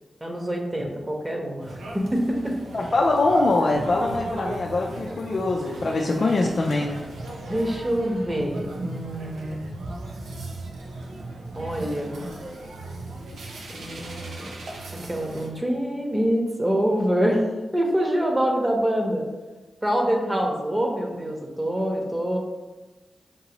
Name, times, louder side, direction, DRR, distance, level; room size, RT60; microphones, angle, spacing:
voice 1, 0.2-2.5 7.5-9.7 11.5-12.2 13.7-14.5 15.1-17.5 17.7-19.2 19.8-22.4, equal, 25° right, 1 dB, 1.1 m, -25 dB
sound 1, 1.6-15.5, right 2 dB, 85° right, 0.5 m, -37 dB
voice 2, 2.7-7.0, left 2 dB, 65° left, -1 dB, 0.4 m, -23 dB
5.2 x 2.7 x 2.9 m, 1.2 s
cardioid pair, 40°, 0 cm